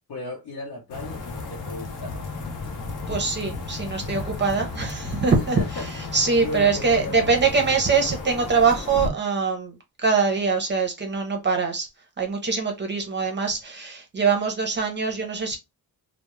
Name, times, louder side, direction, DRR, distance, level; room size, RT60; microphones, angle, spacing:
voice 1, 0.1-2.2 5.4-5.9 6.4-7.7, left 2 dB, 75° left, 0.9 m, -35 dB
sound 1, 0.9-9.1, left 3 dB, 55° left, 0.6 m, -34 dB
voice 2, 3.1-5.6 6.1-11.9 12.2-15.6, right 5 dB, 30° right, 0.5 m, -23 dB
2.2 x 2.0 x 2.9 m
wide cardioid pair, 135°, 38 cm